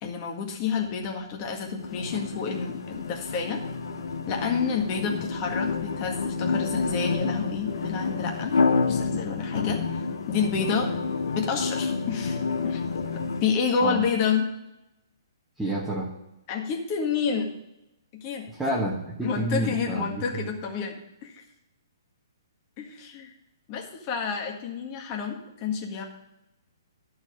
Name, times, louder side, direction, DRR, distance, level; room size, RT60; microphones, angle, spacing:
voice 1, 0.0-3.6 4.3-8.6 8.9-10.9 11.4-12.4 12.6-12.8 13.4-14.5 16.5-17.6 18.1-18.5 19.2-21.4 22.8-23.3 23.7-26.0, left 6 dB, 35° left, 1 dB, 1.7 m, -29 dB
sound 1, 1.8-13.4, left 4 dB, 70° left, 1.1 m, -29 dB
voice 2, 15.6-16.1 18.5-20.5, right 1 dB, 5° right, -5 dB, 1.4 m, -29 dB
11.5 x 4.8 x 6.4 m, 0.90 s
hypercardioid pair, 130°, 2 cm